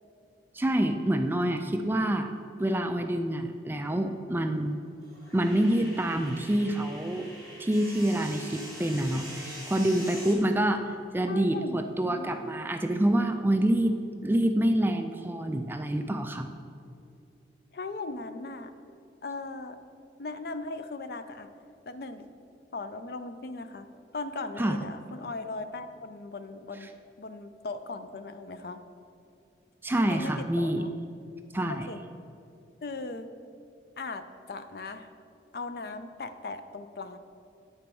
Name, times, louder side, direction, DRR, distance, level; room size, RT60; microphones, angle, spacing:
voice 1, 0.5-2.3 2.6-4.8 5.3-7.3 7.6-10.8 11.1-14.0 14.2-16.5 24.6-24.8 29.8-30.8 31.5-31.9, right 1 dB, 10° right, 6 dB, 0.3 m, -27 dB
sound 1, 4.6-10.3, equal, 20° left, 2.0 m, -44 dB
voice 2, 11.3-12.3 17.7-18.7 19.2-19.8 20.2-21.5 21.9-22.3 22.7-23.9 24.1-26.9 27.2-28.8 30.1-30.9 31.7-32.0 32.8-33.3 34.0-35.1 35.5-37.2, left 3 dB, 55° left, 9 dB, 0.4 m, -38 dB
9.3 x 4.5 x 5.3 m, 2.5 s
head